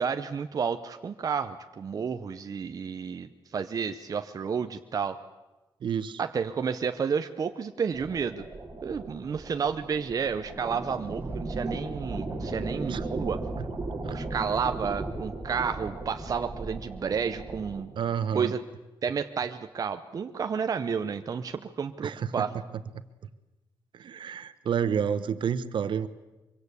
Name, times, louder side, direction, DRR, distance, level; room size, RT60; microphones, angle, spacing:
voice 1, 0.0-5.2 6.2-8.5 8.8-13.4 14.1-17.9 18.3-18.6 19.0-22.5, right 6 dB, 40° right, 8 dB, 0.8 m, -31 dB
voice 2, 5.8-6.2 12.9-13.0 13.6-13.7 14.0-14.2 18.0-18.5 22.0-22.4 23.9-26.1, right 7 dB, 65° right, 13 dB, 1.1 m, -30 dB
sound 1, 7.9-17.8, right 2 dB, 25° right, 4.0 m, -36 dB
24.0 x 23.5 x 8.3 m, 1.1 s
wide cardioid pair, 170°, 9 cm